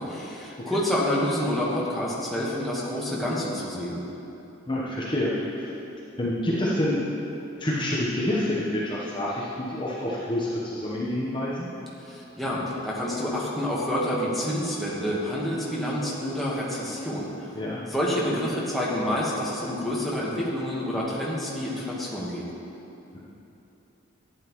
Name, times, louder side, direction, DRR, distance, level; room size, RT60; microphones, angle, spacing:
voice 1, 0.2-4.0 12.0-17.5 17.8-22.4, left 1 dB, ahead, -7 dB, 1.3 m, -28 dB
voice 2, 4.7-5.7 6.2-7.1 7.6-11.7 15.9-16.0 17.5-17.8 23.1-23.2, left 1 dB, 25° left, -7 dB, 0.9 m, -28 dB
11.5 x 9.4 x 3.0 m, 3.0 s
head